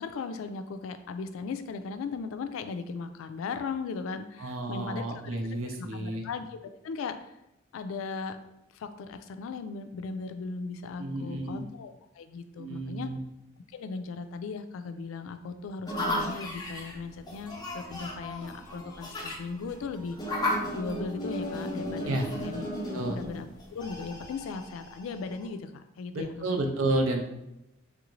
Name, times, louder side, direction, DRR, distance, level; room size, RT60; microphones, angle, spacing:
voice 1, 0.0-6.6 6.8-7.2 7.7-8.4 8.7-13.1 13.7-20.4 20.8-23.5 23.7-26.5, left 4 dB, 80° left, 9 dB, 0.3 m, -37 dB
voice 2, 4.4-6.3 11.0-11.6 12.6-13.2 22.0-22.3 22.9-23.2 26.1-27.3, right 2 dB, 80° right, 4 dB, 0.6 m, -31 dB
sound 1, 15.9-25.5, left 1 dB, 20° left, 0.6 m, -35 dB
3.4 x 2.5 x 3.0 m, 0.88 s
head